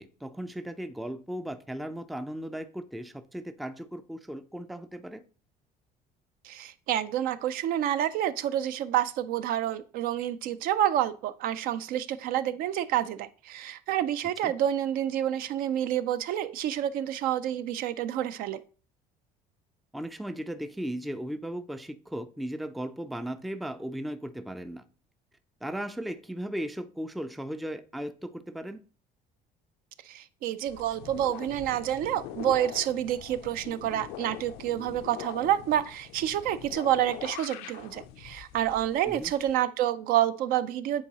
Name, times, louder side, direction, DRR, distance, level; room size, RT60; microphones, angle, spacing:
voice 1, 0.0-5.2 14.4-14.5 19.9-24.8 25.6-28.8 39.1-39.3, right 1 dB, ahead, 0.3 m, -36 dB
voice 2, 6.4-18.6 30.0-41.0, right 11 dB, 65° right, 0.4 m, -28 dB
sound 1, 30.7-39.5, left 12 dB, 80° left, 0.5 m, -43 dB
8.8 x 3.8 x 2.8 m
cardioid pair, 120°, 16 cm